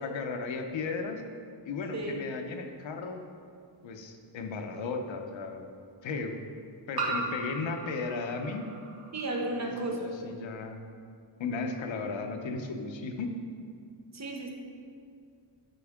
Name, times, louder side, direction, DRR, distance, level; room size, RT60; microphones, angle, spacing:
voice 1, 0.0-1.2 1.6-3.2 3.8-5.7 6.0-6.4 6.9-8.7 9.6-9.9 10.2-10.8 11.4-13.3, left 4 dB, 75° left, 4 dB, 0.8 m, -35 dB
sound 1, 3.0-3.1 4.8-4.9 7.0-9.4, right 3 dB, 50° right, 1.3 m, -37 dB
voice 2, 9.1-10.1 14.1-14.5, right 2 dB, 35° right, 1 dB, 0.9 m, -33 dB
12.0 x 4.4 x 3.6 m, 2.2 s
wide cardioid pair, 180°, 46 cm